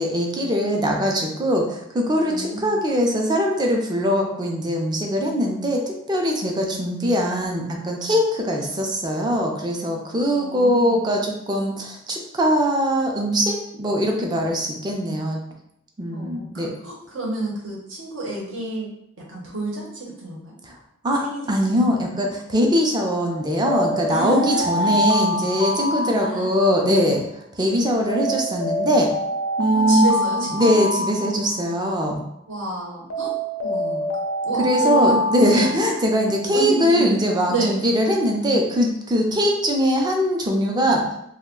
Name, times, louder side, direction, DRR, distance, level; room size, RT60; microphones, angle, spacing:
voice 1, 0.0-15.4 16.0-16.7 20.6-20.7 21.0-27.2 27.6-29.1 29.6-30.1 30.5-32.2 34.6-41.0, equal, 20° right, 1 dB, 0.4 m, -21 dB
voice 2, 2.3-2.8 10.3-11.0 16.1-18.9 19.3-20.5 21.2-21.7 24.1-24.9 26.0-26.5 29.7-30.7 32.5-33.3 33.6-34.1 34.4-35.7 36.5-37.2 37.5-37.8, right 2 dB, 70° right, -3 dB, 0.9 m, -29 dB
Alarm, 23.6-26.9 28.1-31.9 33.1-36.4, left 1 dB, 85° left, 0.4 m, -25 dB
2.3 x 2.1 x 3.6 m, 0.77 s
head